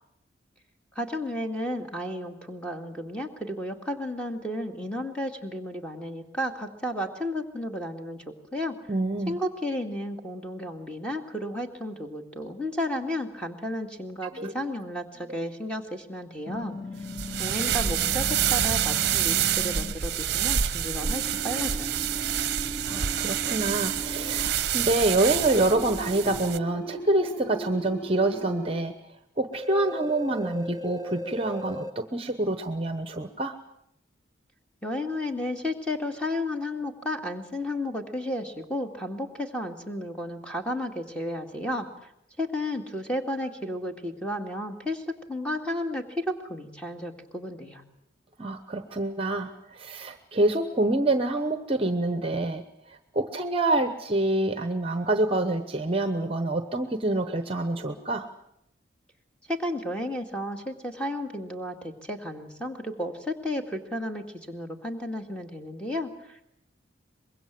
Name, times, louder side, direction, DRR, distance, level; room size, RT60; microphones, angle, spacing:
voice 1, 1.0-8.2 8.5-8.8 9.3-16.8 17.4-22.0 34.8-41.9 42.4-47.8 59.5-66.5, left 1 dB, 5° left, 3 dB, 2.2 m, -33 dB
voice 2, 8.9-9.4 14.3-14.5 22.8-28.9 29.4-33.6 48.4-58.3, right 2 dB, 30° right, 9 dB, 1.0 m, -26 dB
sound 1, 16.5-19.9 21.0-24.5 25.7-28.8 29.5-31.9, equal, 20° left, 1.5 m, -38 dB
sound 2, 17.1-26.6, right 9 dB, 55° right, 0.8 m, -27 dB
24.5 x 21.5 x 7.6 m, 0.79 s
head